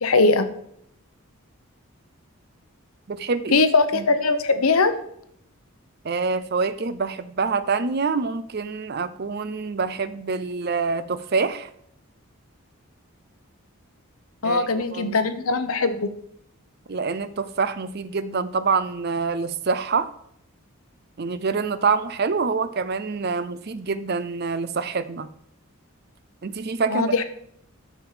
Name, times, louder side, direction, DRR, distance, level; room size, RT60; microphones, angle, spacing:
voice 1, 0.0-0.5 3.5-5.0 14.4-16.1 26.9-27.2, left 3 dB, 80° left, 10 dB, 0.9 m, -20 dB
voice 2, 3.1-3.6 3.9-4.1 6.0-11.7 14.4-15.2 16.9-20.1 21.2-25.3 26.4-27.2, right 4 dB, 45° right, 13 dB, 0.5 m, -26 dB
9.4 x 6.8 x 4.9 m, 0.70 s
head